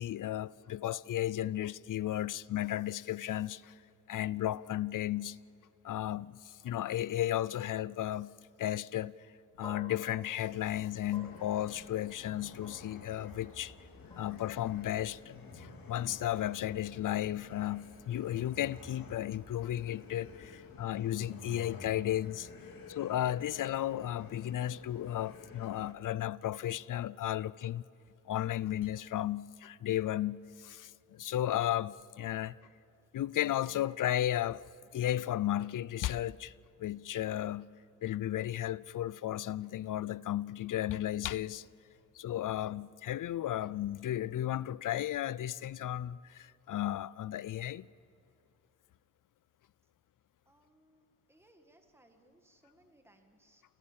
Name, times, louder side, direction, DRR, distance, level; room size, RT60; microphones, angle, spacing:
voice 1, 0.0-3.7 4.1-5.4 5.8-8.3 8.6-9.3 9.6-13.7 14.2-22.5 22.9-27.8 28.3-32.6 33.1-34.6 34.9-36.5 36.8-37.7 38.0-41.7 42.1-47.9, left 12 dB, 65° left, 0.5 m, -34 dB
sound 1, 9.6-18.0, left 1 dB, 15° left, 4.9 m, -56 dB
sound 2, 10.4-25.9, left 4 dB, 80° left, 2.6 m, -51 dB
voice 2, 50.5-53.6, right 1 dB, 5° right, 1.7 m, -65 dB
29.0 x 17.0 x 7.4 m
wide cardioid pair, 125°, 34 cm